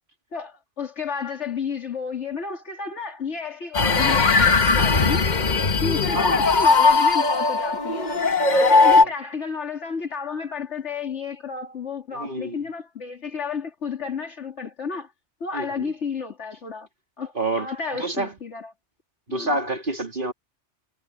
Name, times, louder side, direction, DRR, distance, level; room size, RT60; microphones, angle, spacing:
voice 1, 0.3-5.3 5.8-8.1 8.5-15.1 15.4-16.9 17.2-18.7 19.3-19.6, left 5 dB, 75° left, 2.8 m, -32 dB
sound 1, 3.7-9.0, left 4 dB, 40° left, 1.3 m, -18 dB
voice 2, 12.1-12.6 15.5-15.9 17.3-18.3 19.3-20.3, right 2 dB, 45° right, 3.3 m, -28 dB
omnidirectional pair, 1.2 m